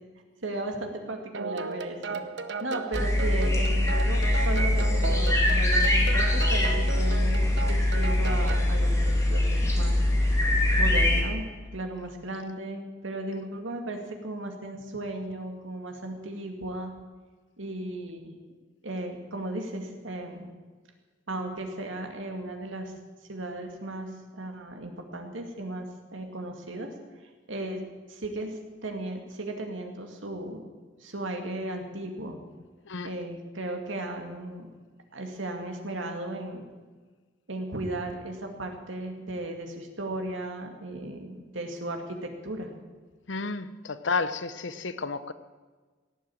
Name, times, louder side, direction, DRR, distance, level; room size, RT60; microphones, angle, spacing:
voice 1, 0.4-2.2 2.6-10.0 10.8-11.5 11.7-16.9 17.6-18.3 18.8-20.5 21.3-22.9 23.3-26.9 27.5-27.8 28.1-30.6 31.0-32.4 33.0-34.7 35.1-36.6 37.5-42.7, right 1 dB, 80° right, 2.3 m, -36 dB
sound 1, 1.3-8.7, right 4 dB, 60° right, 0.9 m, -36 dB
sound 2, 2.9-11.2, left 1 dB, 15° left, 2.4 m, -23 dB
voice 2, 43.3-45.3, left 4 dB, 70° left, 0.8 m, -31 dB
17.5 x 7.7 x 9.1 m
head